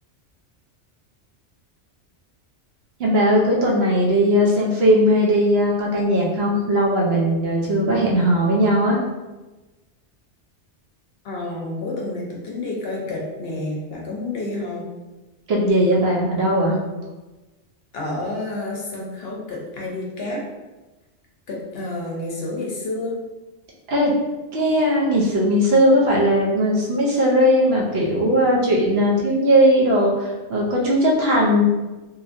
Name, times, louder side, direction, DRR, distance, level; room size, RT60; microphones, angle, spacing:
voice 1, 3.0-9.0 15.5-16.8 23.9-24.1 24.5-31.6, equal, 65° right, -4 dB, 0.9 m, -18 dB
voice 2, 11.2-14.9 17.9-20.4 21.5-23.2, left 2 dB, 65° left, -2 dB, 0.8 m, -29 dB
2.9 x 2.5 x 2.5 m, 1.2 s
omnidirectional pair, 1.2 m